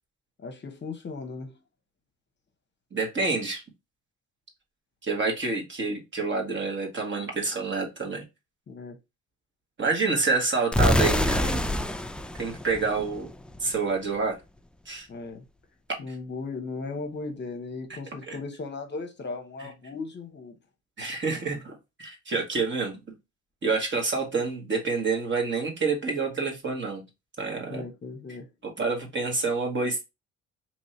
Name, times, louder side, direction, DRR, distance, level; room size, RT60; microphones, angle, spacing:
voice 1, 0.4-1.5 8.7-9.0 15.1-15.4 16.0-20.6 27.7-28.5, left 3 dB, 35° left, 0.8 m, -37 dB
voice 2, 2.9-3.6 5.0-8.2 9.8-11.6 12.4-13.3 13.6-14.4 14.8-15.1 17.9-18.0 18.3-18.4 19.6-19.7 21.0-23.0 23.6-27.0 27.4-27.9 28.6-30.0, right 4 dB, 40° right, 1.4 m, -28 dB
sound 1, 10.7-13.6, left 1 dB, 5° left, 0.3 m, -26 dB
3.0 x 2.7 x 4.2 m
cardioid pair, 90°, 30 cm